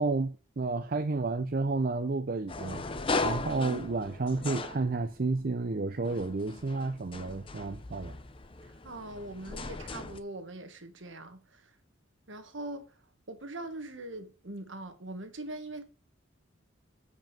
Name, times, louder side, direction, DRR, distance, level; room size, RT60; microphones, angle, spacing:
voice 1, 0.0-2.8 3.2-8.1, right 3 dB, 45° right, 0.5 m, -31 dB
sound 1, 2.5-5.4 6.0-10.2, left 3 dB, 25° left, 0.7 m, -37 dB
voice 2, 8.6-11.7 12.3-12.9 13.3-15.8, right 2 dB, 70° right, 1.6 m, -42 dB
7.0 x 5.3 x 7.3 m
head